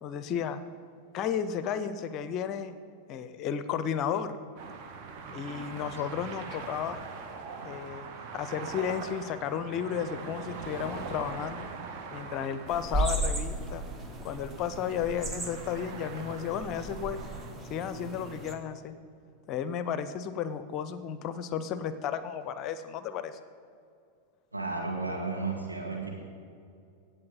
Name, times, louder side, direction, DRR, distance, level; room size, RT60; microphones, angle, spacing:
voice 1, 0.0-0.6 1.1-2.8 3.1-4.3 5.3-7.0 7.6-8.1 8.3-11.7 12.1-13.9 14.2-17.2 17.7-19.0 19.5-23.4, left 8 dB, 35° left, 13 dB, 0.6 m, -33 dB
sound 1, 4.6-17.5, right 4 dB, 40° right, 1.1 m, -43 dB
sound 2, 12.7-18.5, right 1 dB, 20° right, 1.0 m, -35 dB
voice 2, 24.5-26.1, right 3 dB, 85° right, -2 dB, 2.2 m, -33 dB
16.5 x 8.0 x 3.9 m, 2.4 s
figure-of-eight pair, 90°, 0 cm